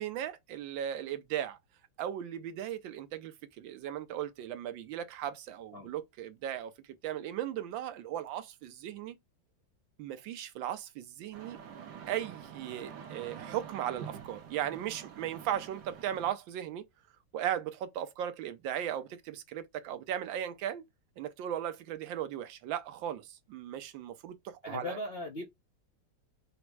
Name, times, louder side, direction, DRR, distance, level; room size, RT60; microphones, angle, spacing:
voice 1, 0.0-1.6 2.0-6.7 7.0-9.2 10.0-11.6 12.1-16.9 17.3-20.8 21.2-25.0, right 10 dB, 85° right, 1.4 m, -37 dB
sound 1, 11.3-16.3, right 7 dB, 65° right, 1.3 m, -47 dB
voice 2, 24.6-25.4, left 1 dB, 60° left, 0.6 m, -38 dB
4.4 x 2.0 x 4.5 m
omnidirectional pair, 2.0 m